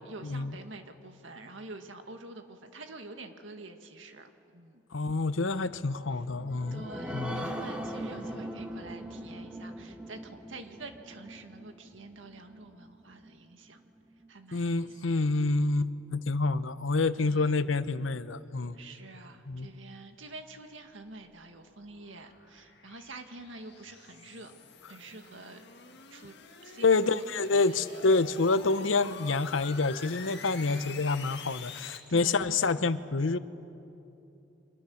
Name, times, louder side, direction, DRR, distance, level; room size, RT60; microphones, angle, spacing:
voice 1, 0.0-4.8 6.1-6.3 6.7-13.8 14.3-15.5 17.2-17.6 18.7-24.5 24.9-25.7 26.1-26.4 26.6-28.2 30.6-31.0 32.1-32.5, right 2 dB, 90° right, 6 dB, 2.0 m, -47 dB
voice 2, 4.9-6.8 7.1-7.5 14.5-18.8 19.5-19.7 26.8-33.4, left 3 dB, 90° left, 13 dB, 0.9 m, -27 dB
sound 1, 6.2-13.3 13.8-13.9 14.2-14.3, equal, 5° right, 1.5 m, -40 dB
sound 2, 20.7-32.0, left 5 dB, 60° left, 2.0 m, -47 dB
29.5 x 25.5 x 7.2 m, 2.8 s
head